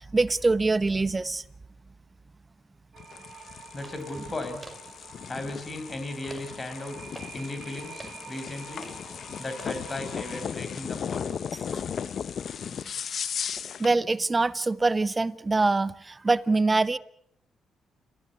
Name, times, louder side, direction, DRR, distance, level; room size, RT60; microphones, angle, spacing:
voice 1, 0.1-1.4 11.7-11.8 13.8-17.0, right 3 dB, 25° right, 1.0 m, -24 dB
sound 1, 2.9-10.4, right 6 dB, 55° right, 3.1 m, -48 dB
sound 2, 3.0-13.9, left 7 dB, 60° left, 0.8 m, -36 dB
sound 3, 3.3-9.8, right 1 dB, 5° right, 5.4 m, -51 dB
voice 2, 3.7-4.6 5.3-7.0 7.3-8.9 9.4-11.3, left 2 dB, 30° left, 5.3 m, -36 dB
29.5 x 15.0 x 8.4 m
supercardioid pair, 65°, 0 cm